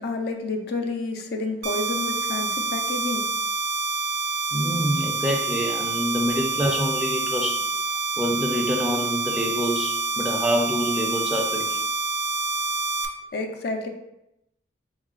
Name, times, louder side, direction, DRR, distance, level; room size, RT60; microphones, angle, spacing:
voice 1, 0.0-3.2 13.3-13.9, left 3 dB, 60° left, 4 dB, 0.5 m, -29 dB
sound 1, 1.6-13.1, right 3 dB, 65° right, 0.5 m, -27 dB
voice 2, 4.5-7.6 8.2-11.8, equal, 5° right, 0 dB, 0.4 m, -26 dB
3.9 x 2.3 x 3.6 m, 0.86 s
head